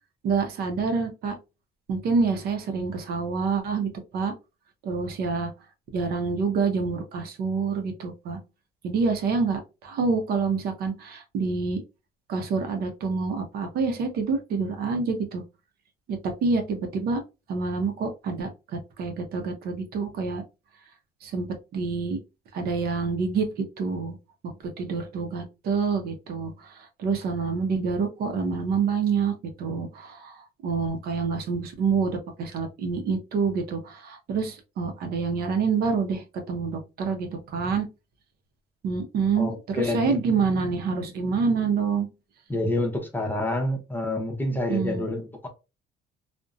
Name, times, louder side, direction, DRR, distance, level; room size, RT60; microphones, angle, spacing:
voice 1, 0.2-1.4 1.9-4.3 4.8-5.5 5.9-8.4 8.8-11.8 12.3-15.4 16.1-17.2 17.5-20.4 21.2-22.2 22.5-24.2 24.4-30.4 30.6-37.9 38.8-42.1 44.7-45.0, right 5 dB, 65° right, 0.6 m, -27 dB
voice 2, 39.4-40.2 42.5-45.5, left 1 dB, 10° left, 0.6 m, -28 dB
2.6 x 2.1 x 2.4 m
cardioid pair, 110°, 17 cm